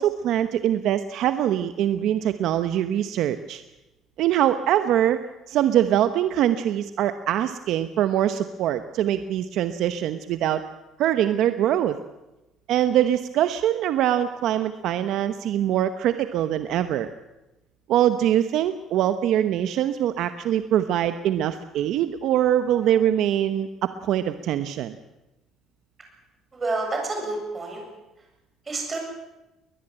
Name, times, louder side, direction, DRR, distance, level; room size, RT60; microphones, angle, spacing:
voice 1, 0.0-3.6 4.2-5.2 5.5-10.6 11.0-12.0 12.7-17.1 17.9-25.0, right 11 dB, 60° right, 10 dB, 1.0 m, -23 dB
voice 2, 26.5-27.8 28.7-29.0, right 2 dB, 20° right, 2 dB, 7.4 m, -29 dB
21.5 x 20.0 x 8.9 m, 1.0 s
cardioid pair, 155°, 0 cm